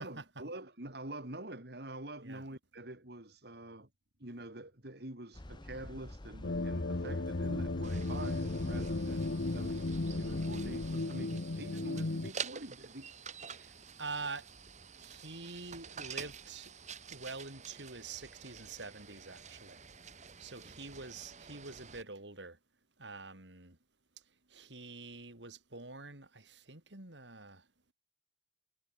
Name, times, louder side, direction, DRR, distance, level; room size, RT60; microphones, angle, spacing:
voice 1, 0.0-3.9 4.2-13.1, right 1 dB, 65° right, 3.9 m, -46 dB
sound 1, 5.3-11.0, left 1 dB, 25° left, 0.9 m, -47 dB
sound 2, 6.4-12.3, left 2 dB, 70° left, 1.0 m, -35 dB
sound 3, 7.8-22.0, right 6 dB, 45° right, 3.5 m, -48 dB
voice 2, 13.5-14.5 15.0-16.7 17.1-19.8 20.4-22.6 23.0-23.8 24.3-27.7, right 3 dB, 85° right, 4.5 m, -46 dB
head